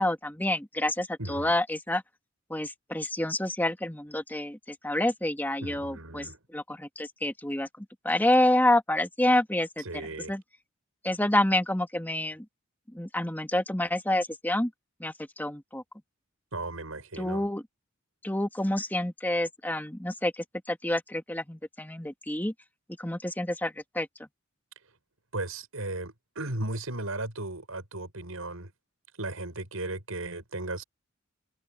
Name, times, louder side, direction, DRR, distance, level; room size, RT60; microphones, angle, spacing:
voice 1, 0.0-2.0 2.5-9.8 10.3-10.4 11.0-12.5 12.9-14.7 15.0-15.8 17.2-17.6 18.2-22.5 23.0-24.1, left 1 dB, 10° left, 2.2 m, -28 dB
voice 2, 1.2-1.5 5.6-6.4 9.8-10.3 16.5-17.5 25.3-28.7 29.2-30.8, right 2 dB, 85° right, 6.3 m, -36 dB
head